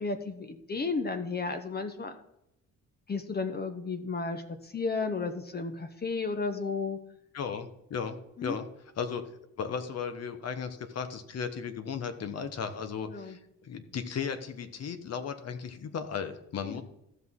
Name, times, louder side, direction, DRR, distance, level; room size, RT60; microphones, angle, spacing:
voice 1, 0.0-2.2 3.1-7.0 8.4-8.6 13.1-13.3 16.6-16.8, left 4 dB, 30° left, 8 dB, 1.0 m, -33 dB
voice 2, 7.3-8.7 8.9-9.3 9.6-16.8, left 6 dB, 55° left, 9 dB, 1.2 m, -36 dB
15.0 x 6.2 x 3.8 m, 0.81 s
cardioid pair, 90°, 30 cm